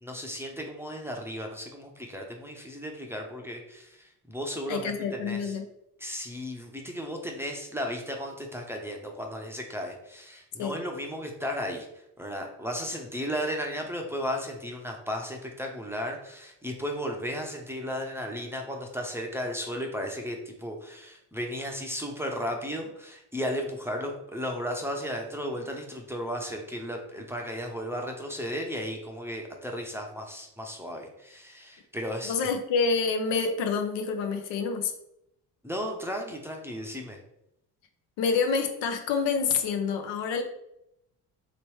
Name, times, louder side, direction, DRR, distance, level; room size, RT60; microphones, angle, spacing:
voice 1, 0.0-4.9 5.2-5.6 6.0-11.9 12.2-32.5 35.6-37.2, equal, 5° right, 1 dB, 0.7 m, -35 dB
voice 2, 4.7-5.6 10.6-10.7 32.3-34.9 38.2-40.4, left 5 dB, 65° left, 6 dB, 0.7 m, -27 dB
3.0 x 3.0 x 3.1 m, 0.81 s
hypercardioid pair, 55°, 48 cm